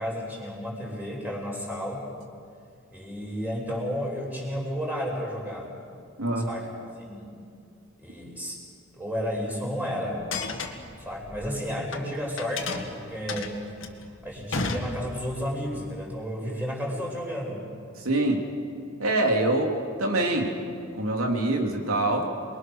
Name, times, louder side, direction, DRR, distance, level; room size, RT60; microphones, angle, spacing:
voice 1, 0.0-2.0 2.9-5.7 6.4-6.7 7.0-7.3 8.0-8.6 8.9-10.2 11.0-13.6 14.2-17.6, equal, 10° right, -2 dB, 5.4 m, -32 dB
sound 1, 10.3-12.0 12.4-15.4, left 3 dB, 65° left, 2.1 m, -33 dB
voice 2, 18.0-18.4 19.0-20.5 20.9-22.3, right 2 dB, 90° right, 2 dB, 3.4 m, -25 dB
28.0 x 22.5 x 6.5 m, 2.3 s
head